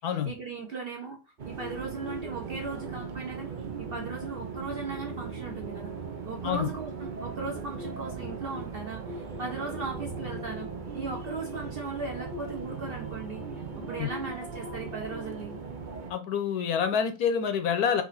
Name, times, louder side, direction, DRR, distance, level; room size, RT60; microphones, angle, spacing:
voice 1, 0.2-1.2 1.4-3.5 3.8-5.9 6.2-10.7 10.9-13.4 13.8-15.6, right 4 dB, 50° right, 0.8 m, -37 dB
sound 1, 1.4-16.1, right 4 dB, 85° right, 0.4 m, -38 dB
voice 2, 16.1-18.0, left 7 dB, 75° left, 1.2 m, -27 dB
3.9 x 2.9 x 4.0 m
omnidirectional pair, 1.7 m